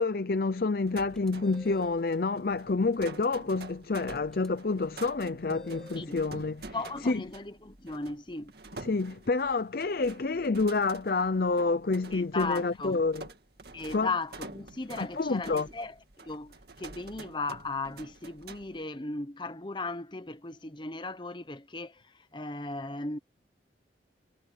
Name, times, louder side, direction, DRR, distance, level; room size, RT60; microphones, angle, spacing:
voice 1, 0.0-6.7 7.0-7.2 8.8-13.2 13.9-14.1 15.0-15.7, left 3 dB, 55° left, 0.6 m, -28 dB
sound 1, 0.8-18.8, right 3 dB, 60° right, 2.1 m, -48 dB
sound 2, 1.1-2.0 4.3-4.5 5.5-6.1, equal, 5° left, 6.0 m, -50 dB
voice 2, 6.7-8.5 12.1-13.0 13.7-23.2, left 3 dB, 25° left, 1.0 m, -37 dB
head